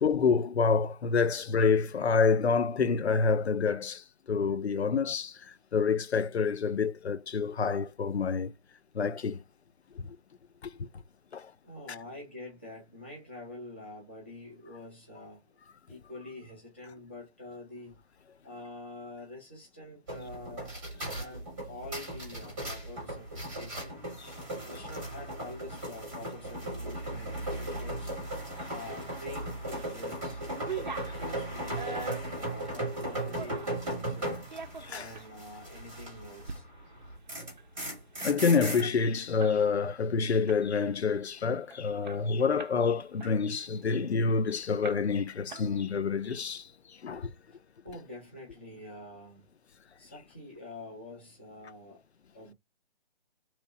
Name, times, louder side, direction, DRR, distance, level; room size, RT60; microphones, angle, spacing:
voice 1, 0.0-8.5 8.9-9.4 10.0-10.1 10.6-10.9 11.3-11.5 24.2-24.3 34.9-35.1 38.2-46.7 47.0-47.3, left 5 dB, 90° left, 0.5 m, -27 dB
voice 2, 11.4-15.4 15.9-18.0 18.4-23.9 24.6-28.1 28.7-30.4 31.0-34.4 34.9-36.7 47.8-49.4 50.0-52.0 52.3-52.5, left 2 dB, 10° left, 0.5 m, -46 dB
sound 1, 20.1-36.7 37.0-38.8, right 1 dB, 10° right, 0.9 m, -37 dB
sound 2, 29.4-29.9 30.2-33.8 34.3-35.3 35.7-35.9 36.3-36.6 36.9-37.0 37.3-39.6 39.9-40.1 40.5-40.9 41.4-41.5 41.7-42.8 43.2-44.4 44.8-45.2 45.5-46.1, right 6 dB, 45° right, 0.5 m, -43 dB
3.0 x 2.0 x 3.6 m
figure-of-eight pair, 150°, 32 cm